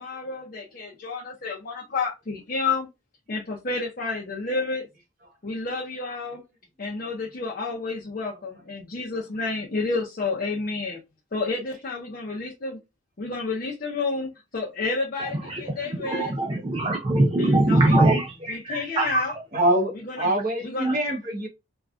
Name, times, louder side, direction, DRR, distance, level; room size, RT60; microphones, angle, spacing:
voice 1, 0.0-2.9 3.3-4.9 5.4-6.4 6.8-11.0 11.3-12.8 13.2-16.3 17.4-18.0 18.5-19.3 20.0-20.3 20.6-21.0, left 3 dB, 45° left, 0.5 m, -30 dB
voice 2, 15.2-19.3 20.2-20.3 20.8-21.0, right 1 dB, 25° right, 0.4 m, -23 dB
voice 3, 19.5-21.5, right 1 dB, 45° right, 1.0 m, -24 dB
3.3 x 2.3 x 2.4 m
head